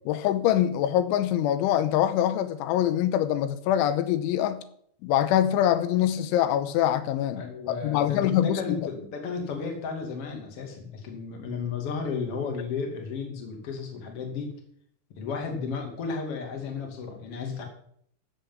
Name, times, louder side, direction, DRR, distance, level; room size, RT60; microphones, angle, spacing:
voice 1, 0.1-4.6 5.0-8.8, left 11 dB, 90° left, 3.3 m, -24 dB
voice 2, 7.3-14.5 15.1-17.7, left 5 dB, 40° left, 2.7 m, -33 dB
14.0 x 7.0 x 7.5 m
omnidirectional pair, 5.3 m